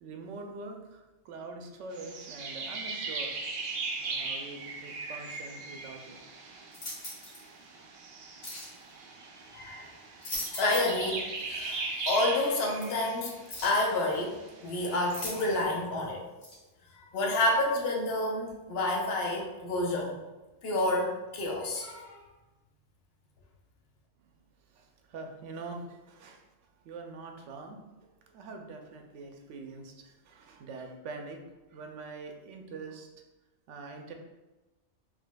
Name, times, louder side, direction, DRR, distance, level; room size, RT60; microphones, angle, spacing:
voice 1, 0.0-3.3 4.0-6.3 24.7-26.4 26.8-31.4 31.7-33.1 33.7-34.1, right 3 dB, 85° right, 3 dB, 0.9 m, -44 dB
sound 1, 1.9-15.6, right 3 dB, 60° right, 0.8 m, -39 dB
sound 2, 6.7-7.4 8.4-8.7 10.0-11.0 11.4-11.5 12.8-12.9 13.5-13.8 15.1-15.8 16.4-16.6, left 1 dB, 80° left, 1.9 m, -39 dB
voice 2, 9.5-9.9 10.5-11.2 11.5-13.3 13.6-14.4 14.6-16.3 16.9-20.2 20.6-22.2, left 2 dB, 60° left, -1 dB, 1.0 m, -29 dB
5.0 x 3.4 x 2.2 m, 1.1 s
omnidirectional pair, 1.2 m